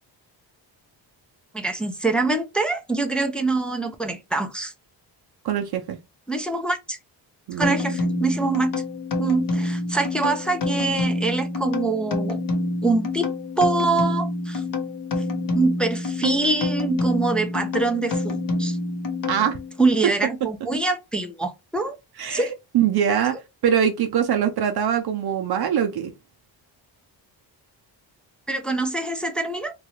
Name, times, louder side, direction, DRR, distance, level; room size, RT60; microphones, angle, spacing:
voice 1, 1.5-4.7 6.3-7.0 7.6-8.7 9.2-12.4 12.8-13.3 13.6-14.6 15.5-18.8 19.8-21.9 22.3-22.5 28.5-29.7, right 3 dB, ahead, 0.3 m, -24 dB
voice 2, 5.4-6.0 7.5-7.8 8.1-8.2 19.3-19.6 22.2-22.5 22.7-23.3 23.6-26.1, right 9 dB, 60° right, 0.6 m, -22 dB
sound 1, 7.6-19.8, left 2 dB, 50° left, 0.8 m, -27 dB
3.0 x 2.4 x 3.0 m
cardioid pair, 135°, 45 cm